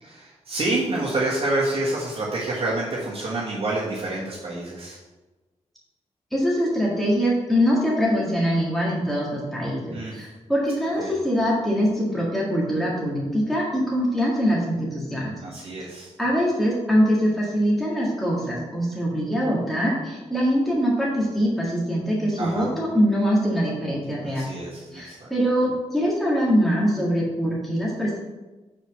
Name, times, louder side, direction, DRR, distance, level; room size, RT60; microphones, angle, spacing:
voice 1, 0.0-5.0 9.9-10.2 11.0-11.2 15.4-16.1 22.4-22.7 24.2-25.3, right 2 dB, 55° right, -6 dB, 1.4 m, -28 dB
voice 2, 6.3-15.3 16.2-24.5 24.9-28.2, equal, ahead, -6 dB, 1.8 m, -23 dB
5.0 x 4.5 x 6.0 m, 1.2 s
wide cardioid pair, 115°, 12 cm